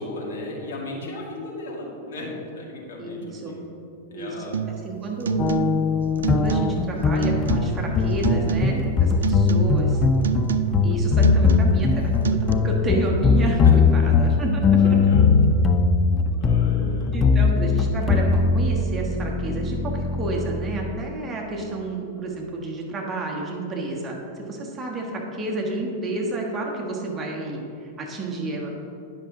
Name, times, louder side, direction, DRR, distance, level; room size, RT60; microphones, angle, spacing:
voice 1, 0.0-3.6 4.1-4.6 13.6-13.7 14.7-15.2 16.3-17.1, left 2 dB, 65° left, -2 dB, 1.9 m, -36 dB
voice 2, 3.0-3.6 4.1-4.3 4.8-5.5 6.3-10.0 10.8-15.0 16.8-27.6 28.0-28.7, right 2 dB, 20° right, -2 dB, 1.4 m, -30 dB
sound 1, 4.5-4.9 5.2-5.9 6.2-6.9 7.2-7.9 8.2-8.9 9.2-9.9 10.2-10.9 11.2-11.9 12.2-12.5, right 8 dB, 70° right, 0.3 m, -27 dB
sound 2, 5.4-20.9, left 5 dB, 25° left, 0.4 m, -20 dB
9.8 x 6.0 x 3.8 m, 2.8 s
figure-of-eight pair, 95°, 0 cm